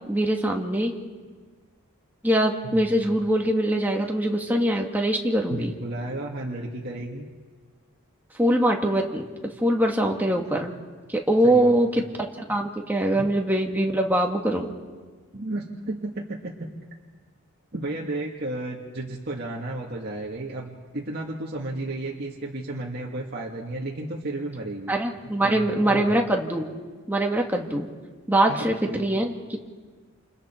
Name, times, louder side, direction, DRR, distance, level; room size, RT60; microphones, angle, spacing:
voice 1, 0.1-0.9 2.2-5.7 8.4-9.2 9.6-10.7 11.1-12.0 12.5-14.7 24.9-26.7 27.1-27.9 28.3-29.6, right 1 dB, 10° right, 1 dB, 2.0 m, -23 dB
voice 2, 2.6-3.1 5.5-7.3 11.4-12.0 13.1-13.2 15.3-16.7 17.7-25.0 25.2-26.2 28.4-29.2, right 2 dB, 45° right, -2 dB, 1.9 m, -33 dB
29.0 x 28.5 x 4.5 m, 1.5 s
head